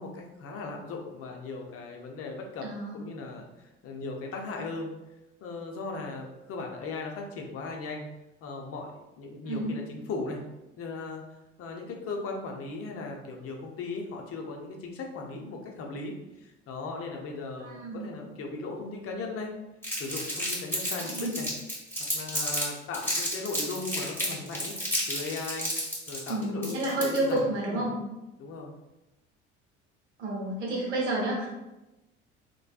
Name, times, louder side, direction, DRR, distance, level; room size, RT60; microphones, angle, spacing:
voice 1, 0.0-2.7 2.9-4.9 5.4-8.1 8.4-10.4 10.8-11.2 11.6-19.5 20.0-21.5 22.1-24.7 25.1-25.7 26.1-27.4 27.7-27.9 28.4-28.7, left 3 dB, 45° left, 1 dB, 0.6 m, -37 dB
voice 2, 2.6-2.9 9.4-9.8 17.6-18.1 21.0-21.4 26.3-28.0 30.2-31.5, right 2 dB, 90° right, -3 dB, 0.8 m, -30 dB
Crumpling crinkling, 19.8-22.6 22.9-27.4, equal, 5° left, 1.3 m, -31 dB
3.2 x 2.1 x 2.3 m, 0.99 s
hypercardioid pair, 60°, 33 cm